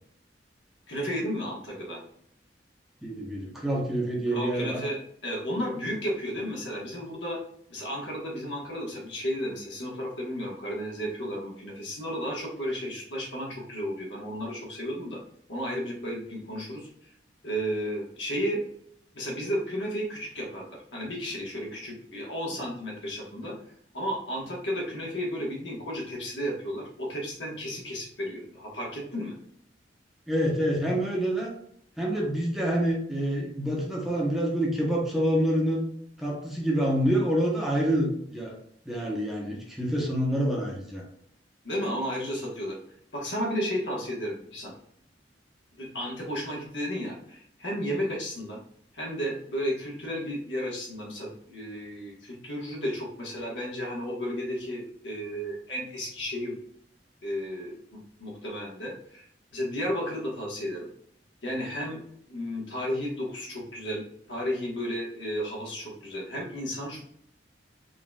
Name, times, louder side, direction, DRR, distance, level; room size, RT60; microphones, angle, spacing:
voice 1, 0.9-2.0 4.3-7.4 7.7-15.2 15.5-17.1 17.4-18.6 19.1-23.5 23.9-29.4 41.6-42.8 43.1-44.7 45.8-48.6 48.9-56.5 57.2-59.3 59.5-60.9 61.4-62.0 62.3-67.0, equal, 75° left, -2 dB, 1.4 m, -33 dB
voice 2, 3.0-4.8 30.3-31.5 32.0-35.8 36.2-38.6 38.9-41.0, equal, ahead, -3 dB, 0.9 m, -27 dB
3.9 x 3.8 x 2.4 m, 0.67 s
head